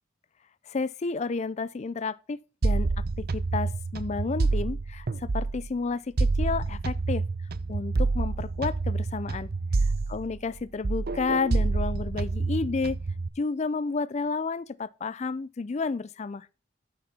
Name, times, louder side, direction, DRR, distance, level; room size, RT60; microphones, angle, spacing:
voice 1, 0.7-2.9 3.3-7.2 7.7-9.5 9.8-13.0 13.4-16.5, left 4 dB, 35° left, 0.4 m, -31 dB
sound 1, 2.6-5.7 6.2-10.6 10.8-13.3, right 3 dB, 55° right, 0.6 m, -28 dB
8.6 x 6.7 x 5.7 m
head